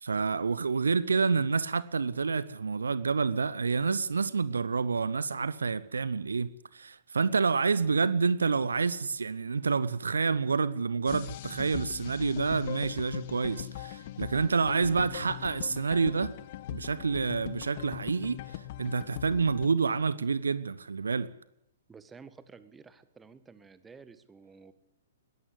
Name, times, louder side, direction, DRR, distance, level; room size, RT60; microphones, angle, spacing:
voice 1, 0.0-16.3 16.7-21.3, right 5 dB, 65° right, 0.9 m, -28 dB
sound 1, 11.1-19.7, left 14 dB, 40° left, 1.0 m, -40 dB
voice 2, 21.9-24.7, right 5 dB, 10° right, 1.5 m, -52 dB
21.0 x 16.5 x 9.9 m
figure-of-eight pair, 115°, 0 cm